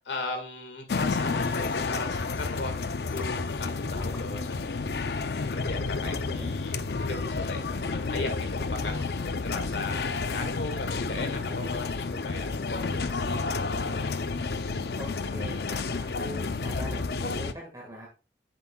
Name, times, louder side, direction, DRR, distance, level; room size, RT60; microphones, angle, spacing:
voice 1, 0.0-2.8 3.1-5.0 5.5-13.6 13.8-14.2, left 2 dB, 85° left, 5 dB, 1.9 m, -37 dB
sound 1, 0.9-17.5, left 4 dB, 65° left, 0.5 m, -30 dB
sound 2, 3.2-3.3 4.0-4.6 5.1-5.3 6.1-6.2 7.1-7.3 8.1-8.2 9.0-9.1, left 1 dB, 15° left, 1.8 m, -53 dB
voice 2, 6.1-6.5 15.0-18.1, right 1 dB, 20° right, -1 dB, 1.7 m, -42 dB
10.5 x 7.4 x 2.3 m, 0.32 s
head